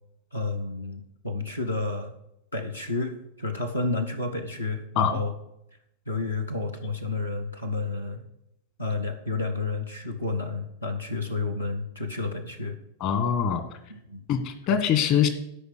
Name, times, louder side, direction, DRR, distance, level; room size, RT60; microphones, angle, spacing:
voice 1, 0.3-2.1 2.5-5.3 6.1-8.2 8.8-12.8 13.9-14.2, left 3 dB, 80° left, 4 dB, 1.0 m, -30 dB
voice 2, 13.0-13.6 14.3-15.3, left 8 dB, 40° left, 9 dB, 1.5 m, -23 dB
13.0 x 5.5 x 6.6 m, 0.82 s
figure-of-eight pair, 90°, 0 cm